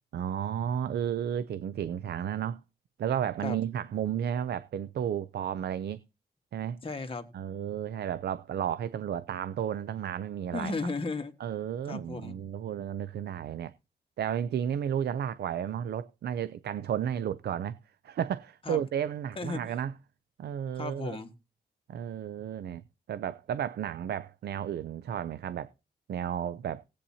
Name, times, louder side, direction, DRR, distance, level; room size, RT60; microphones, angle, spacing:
voice 1, 0.1-2.6 3.0-6.0 6.5-6.8 7.3-10.8 11.4-13.7 14.2-17.8 18.0-19.9 20.4-21.2 21.9-22.8 23.1-25.7 26.1-26.8, right 9 dB, 85° right, 0.5 m, -33 dB
voice 2, 6.8-7.3 10.5-11.3 11.9-12.4 18.6-18.8 19.4-19.6 20.7-21.3, left 3 dB, 35° left, 1.5 m, -34 dB
18.5 x 8.4 x 2.8 m
wide cardioid pair, 105°, 17 cm